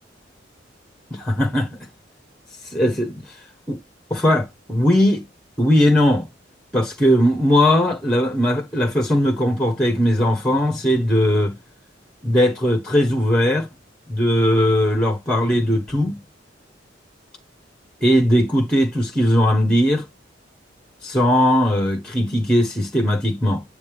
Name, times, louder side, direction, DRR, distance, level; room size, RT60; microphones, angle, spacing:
voice 1, 1.1-1.7 2.6-3.4 3.7-3.8 4.1-5.2 5.6-6.3 6.7-11.5 12.2-13.7 14.1-16.2 18.0-20.1 21.0-23.6, equal, 5° left, 1.0 m, -19 dB
8.4 x 3.3 x 3.4 m
head